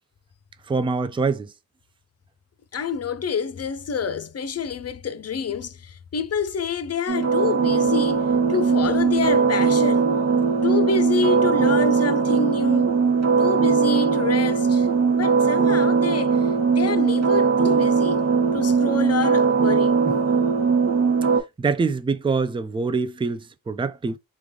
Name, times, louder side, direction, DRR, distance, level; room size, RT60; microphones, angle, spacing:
voice 1, 0.7-1.5 20.1-20.2 21.6-24.2, right 4 dB, 15° right, 0.3 m, -24 dB
voice 2, 2.7-10.1 10.6-12.9 13.4-18.2 18.5-20.0, left 5 dB, 45° left, 0.5 m, -27 dB
sound 1, 7.1-21.4, right 5 dB, 45° right, 0.8 m, -20 dB
3.3 x 2.4 x 3.6 m
wide cardioid pair, 90°, 36 cm